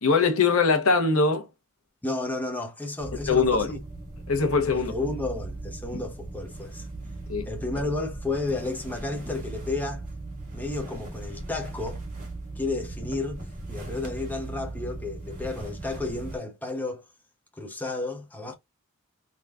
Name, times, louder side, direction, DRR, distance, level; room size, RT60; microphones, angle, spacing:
voice 1, 0.0-1.5 3.3-3.7 4.3-4.9 5.9-6.0 7.3-7.5, left 4 dB, 75° left, 0.9 m, -22 dB
voice 2, 2.0-3.8 4.9-6.9 7.4-10.1 10.5-12.0 12.6-13.4 13.7-17.0 17.6-18.5, left 2 dB, 10° left, 0.7 m, -32 dB
sound 1, 3.0-16.4, right 2 dB, 35° right, 1.9 m, -38 dB
3.7 x 3.7 x 2.4 m
head